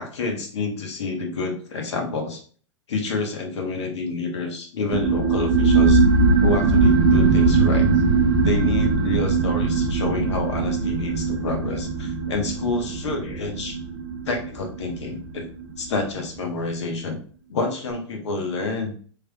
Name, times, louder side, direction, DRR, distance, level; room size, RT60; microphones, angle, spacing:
voice 1, 0.0-2.4 2.9-6.0 6.4-7.9 8.4-13.8 14.2-15.5 15.8-17.2 17.5-19.0, left 3 dB, 60° left, 2 dB, 1.1 m, -28 dB
sound 1, 4.9-16.1, right 4 dB, 30° right, 0.5 m, -20 dB
3.4 x 3.2 x 2.3 m, 0.43 s
figure-of-eight pair, 105°, 16 cm